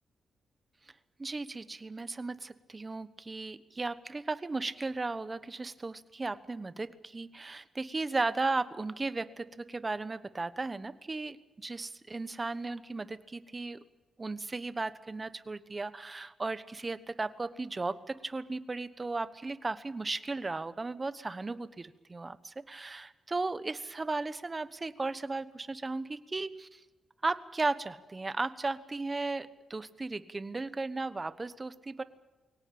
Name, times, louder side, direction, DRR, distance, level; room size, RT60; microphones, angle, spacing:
voice 1, 1.2-13.8 14.2-26.8 27.2-32.0, right 3 dB, 25° right, 14 dB, 1.1 m, -36 dB
23.0 x 18.0 x 8.8 m, 1.2 s
cardioid pair, 90°, 0 cm